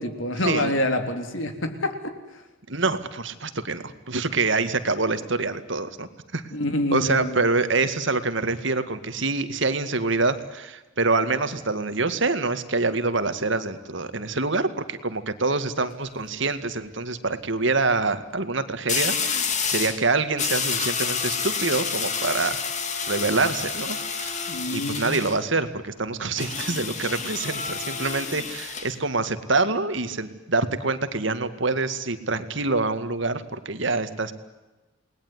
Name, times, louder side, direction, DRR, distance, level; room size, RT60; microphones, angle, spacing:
voice 1, 0.0-2.2 6.5-7.3 24.5-25.2, left 1 dB, 70° left, 7 dB, 3.6 m, -27 dB
voice 2, 2.7-6.4 6.9-22.6 23.1-24.4 24.7-34.3, right 3 dB, 65° right, 10 dB, 2.1 m, -26 dB
sound 1, 15.7-16.1 18.9-20.0 20.4-25.4 26.4-28.9, left 6 dB, 35° left, 2.7 m, -29 dB
29.0 x 20.5 x 9.8 m, 1.1 s
head